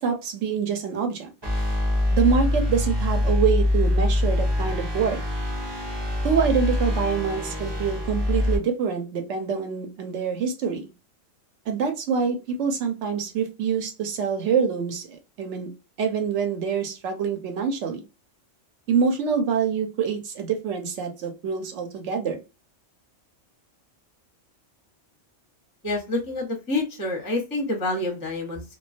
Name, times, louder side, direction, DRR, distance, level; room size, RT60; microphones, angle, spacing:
voice 1, 0.0-1.3 2.1-5.2 6.2-10.9 11.7-15.7 16.0-18.0 18.9-22.4, right 6 dB, 70° right, 5 dB, 1.0 m, -25 dB
sound 1, 1.4-8.6, left 1 dB, 30° right, 0.5 m, -24 dB
voice 2, 25.8-28.6, left 2 dB, 20° left, 2 dB, 0.6 m, -27 dB
2.3 x 2.3 x 2.4 m, 0.28 s
omnidirectional pair, 1.3 m